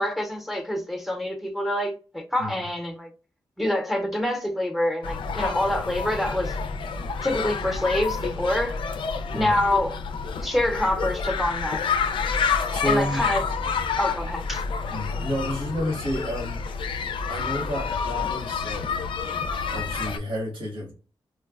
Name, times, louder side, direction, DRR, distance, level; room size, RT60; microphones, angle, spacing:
voice 1, 0.0-3.1 3.6-6.5 7.2-8.8 9.3-9.9 10.4-11.8 12.8-13.4 14.0-14.6, left 1 dB, ahead, 0.7 m, -26 dB
sound 1, 5.0-20.2, left 5 dB, 80° left, 0.4 m, -29 dB
voice 2, 9.3-9.6 12.7-13.2 14.9-16.8 17.3-20.9, equal, 85° right, 1.4 m, -31 dB
4.4 x 2.1 x 2.3 m
wide cardioid pair, 95°, 9 cm